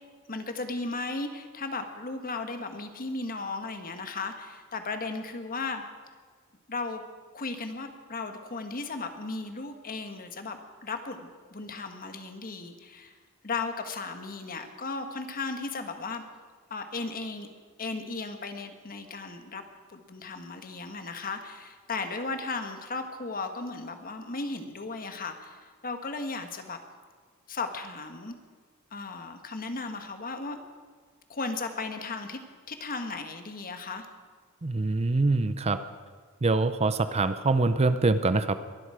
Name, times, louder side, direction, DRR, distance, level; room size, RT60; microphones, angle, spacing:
voice 1, 0.3-5.8 6.7-7.0 7.3-13.1 13.4-16.2 16.7-17.5 17.8-19.6 19.9-26.8 27.5-28.3 28.9-30.6 31.3-32.4 32.7-34.1, left 3 dB, 45° left, 7 dB, 1.4 m, -35 dB
voice 2, 34.6-35.8 36.4-38.6, right 3 dB, 30° right, 12 dB, 0.6 m, -24 dB
22.0 x 12.0 x 4.9 m, 1.5 s
head